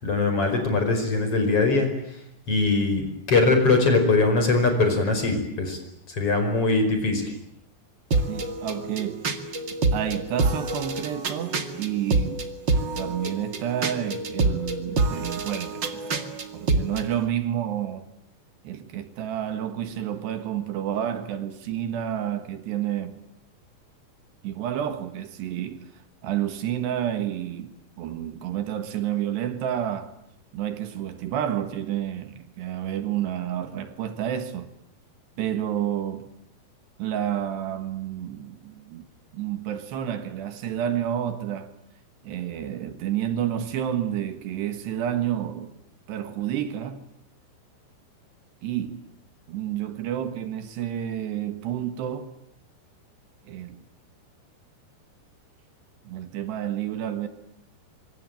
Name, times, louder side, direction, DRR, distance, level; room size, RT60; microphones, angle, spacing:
voice 1, 0.0-1.9 2.5-5.8 6.1-7.3, left 3 dB, 35° left, 5.8 m, -21 dB
sound 1, 8.1-17.1, right 3 dB, 40° right, 1.7 m, -27 dB
voice 2, 8.3-9.3 9.9-12.5 13.0-16.2 16.5-18.1 18.6-23.2 24.4-30.1 30.5-34.7 35.4-36.3 37.0-39.1 39.3-41.7 42.2-45.8 46.1-47.1 48.6-49.0 49.5-52.3 53.5-53.8 56.1-57.3, right 10 dB, 75° right, 3.7 m, -30 dB
25.5 x 25.5 x 9.1 m
omnidirectional pair, 5.0 m